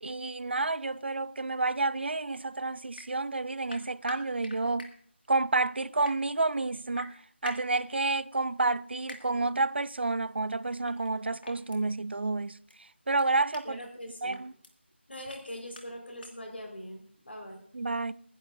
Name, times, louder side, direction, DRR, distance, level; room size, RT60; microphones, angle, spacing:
voice 1, 0.0-4.9 5.3-13.8 14.2-14.5 17.7-18.1, right 3 dB, 60° right, 0.4 m, -30 dB
sound 1, 2.9-3.1 3.7-4.9 5.8-6.2 6.9-7.8 9.1-9.2 10.9-11.1 11.4-11.8 12.7-12.8 13.2-13.6 14.3-14.7 15.3-15.4 15.7-15.8 16.2-16.3, left 2 dB, 50° left, 2.0 m, -44 dB
voice 2, 13.6-14.4 15.1-17.6, equal, 65° left, 4.5 m, -42 dB
25.0 x 10.0 x 2.6 m
figure-of-eight pair, 165°, 6 cm